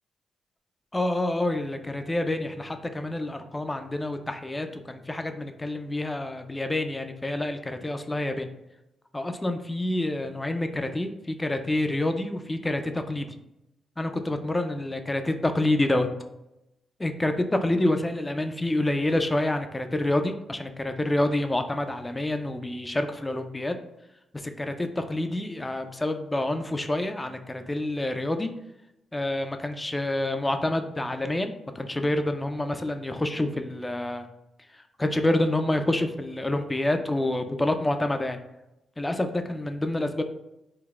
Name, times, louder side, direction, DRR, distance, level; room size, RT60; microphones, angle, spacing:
voice 1, 0.9-8.5 9.1-13.3 14.0-16.1 17.0-23.7 24.3-28.5 29.1-34.3 35.0-38.4 39.0-40.2, left 1 dB, 20° left, 7 dB, 0.3 m, -27 dB
3.8 x 2.1 x 2.3 m, 0.90 s
supercardioid pair, 60°, 0 cm